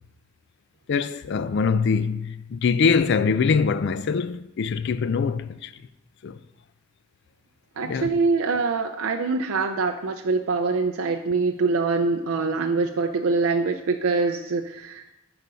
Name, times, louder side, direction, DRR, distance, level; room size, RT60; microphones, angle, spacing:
voice 1, 0.9-5.7 6.2-6.4 7.8-8.1, left 5 dB, 55° left, 0.3 m, -23 dB
voice 2, 7.8-15.1, right 4 dB, 75° right, 0.5 m, -24 dB
7.8 x 4.9 x 5.6 m
head